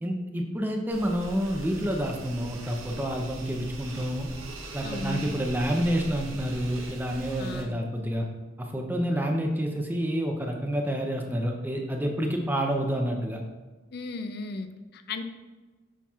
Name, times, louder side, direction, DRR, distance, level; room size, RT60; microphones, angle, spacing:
voice 1, 0.0-4.3 4.7-8.3 8.6-13.4, equal, 10° right, 1 dB, 0.5 m, -28 dB
sound 1, 0.9-7.6, right 2 dB, 75° right, 0.8 m, -41 dB
voice 2, 4.8-5.3 7.4-7.8 13.9-15.2, left 3 dB, 50° left, 8 dB, 0.4 m, -36 dB
7.1 x 5.8 x 2.4 m, 1.3 s
head